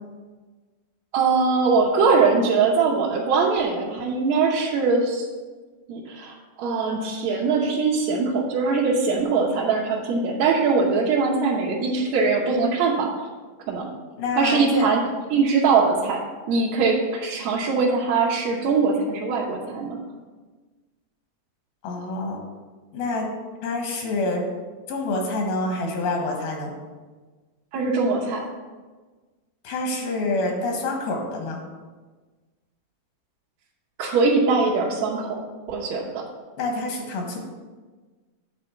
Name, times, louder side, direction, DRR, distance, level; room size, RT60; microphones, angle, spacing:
voice 1, 1.1-5.3 5.9-13.1 13.7-13.8 14.4-15.0 15.3-16.2 16.5-20.0 27.7-28.5 34.0-35.4 35.7-36.2, right 4 dB, 65° right, -5 dB, 1.8 m, -22 dB
voice 2, 14.2-14.9 21.8-22.4 22.9-23.3 23.6-24.4 24.9-26.7 29.6-31.6 36.6-37.4, left 2 dB, 80° left, 1 dB, 3.2 m, -27 dB
8.8 x 4.2 x 7.1 m, 1.4 s
omnidirectional pair, 4.1 m